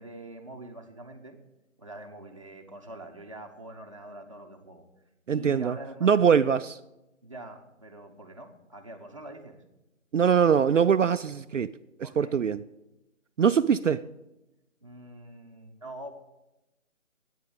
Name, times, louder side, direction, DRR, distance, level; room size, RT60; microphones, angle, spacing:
voice 1, 0.0-1.4 1.8-4.9 5.3-6.6 7.2-9.6 12.0-12.4 14.8-16.1, right 1 dB, 25° right, 1 dB, 1.0 m, -44 dB
voice 2, 5.3-6.7 10.1-11.7 12.0-12.6 13.4-14.0, right 7 dB, 70° right, 11 dB, 0.5 m, -23 dB
9.7 x 9.1 x 8.3 m, 0.95 s
figure-of-eight pair, 175°, 39 cm